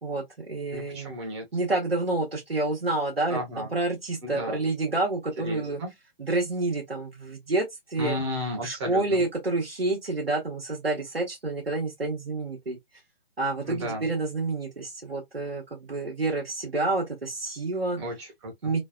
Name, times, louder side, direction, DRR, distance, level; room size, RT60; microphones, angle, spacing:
voice 1, 0.0-1.1 1.5-5.8 6.2-8.2 8.6-12.8 13.4-18.0 18.6-18.8, right 2 dB, 85° right, 1.3 m, -28 dB
voice 2, 0.7-1.5 3.3-3.7 4.2-4.6 5.4-5.9 8.0-9.2 13.6-14.1 18.0-18.7, equal, 30° right, 1.1 m, -33 dB
3.2 x 2.2 x 2.3 m
figure-of-eight pair, 135°, 29 cm